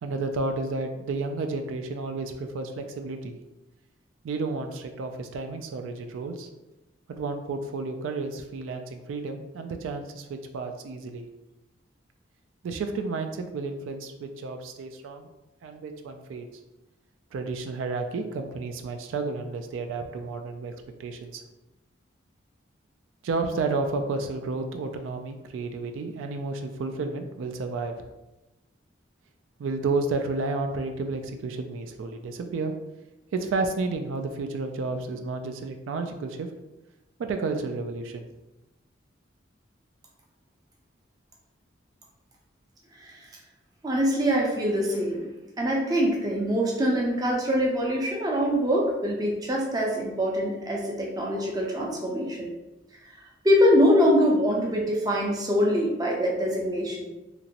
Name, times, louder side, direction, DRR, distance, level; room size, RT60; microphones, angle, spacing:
voice 1, 0.0-3.4 4.2-6.5 7.1-11.3 12.6-15.3 15.6-16.5 17.3-20.7 21.0-21.4 23.2-28.1 29.6-32.7 33.3-36.5 37.2-38.2, right 3 dB, 85° right, 6 dB, 0.3 m, -31 dB
voice 2, 43.8-45.3 45.6-52.5 53.4-57.1, equal, 20° right, -1 dB, 0.5 m, -24 dB
2.9 x 2.5 x 2.8 m, 1.0 s
head